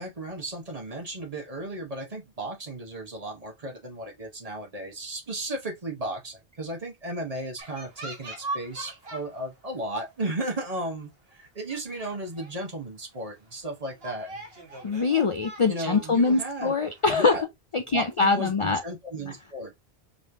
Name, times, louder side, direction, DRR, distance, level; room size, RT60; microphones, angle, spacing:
voice 1, 0.0-14.4 15.7-16.7 17.1-17.4 17.9-19.7, right 1 dB, 35° right, 1.0 m, -35 dB
sound 1, 7.6-9.5 9.8-10.1 10.8-10.9 11.3-11.4 11.7-12.7 13.1-13.2 13.8-17.4, right 2 dB, 60° right, 1.6 m, -41 dB
voice 2, 14.8-17.3 17.7-18.8, left 4 dB, 45° left, 0.4 m, -23 dB
5.2 x 3.1 x 2.6 m
omnidirectional pair, 1.1 m